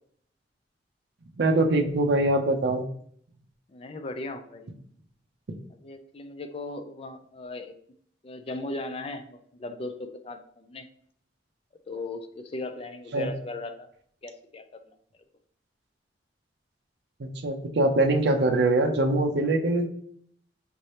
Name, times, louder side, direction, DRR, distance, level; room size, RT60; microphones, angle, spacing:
voice 1, 1.4-2.8 5.5-5.6 13.1-13.3 17.2-19.9, right 2 dB, 60° right, 3 dB, 0.5 m, -23 dB
voice 2, 3.7-4.7 5.8-7.7 8.2-10.9 11.9-13.9 14.2-14.8, left 2 dB, 30° left, 7 dB, 0.4 m, -37 dB
5.2 x 2.7 x 3.2 m, 0.63 s
head